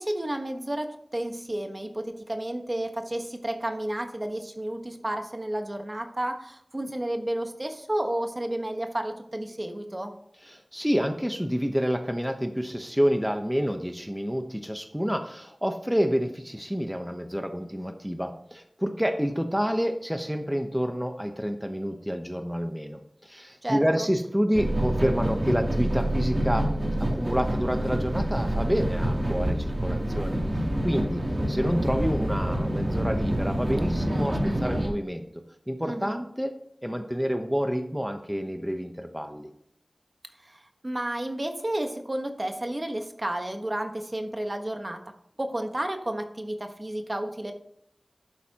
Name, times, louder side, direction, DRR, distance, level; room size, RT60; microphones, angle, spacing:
voice 1, 0.0-10.1 23.6-24.1 35.8-36.2 40.4-45.0 45.4-47.5, right 1 dB, 35° right, 5 dB, 1.3 m, -31 dB
voice 2, 10.4-26.7 27.0-30.4 30.8-31.2 31.5-35.3 35.7-36.5 36.8-39.5, equal, 5° right, 6 dB, 1.0 m, -28 dB
sound 1, 24.5-34.9, right 1 dB, 50° right, 2.9 m, -27 dB
11.5 x 8.2 x 3.0 m, 0.73 s
wide cardioid pair, 40°, 0 cm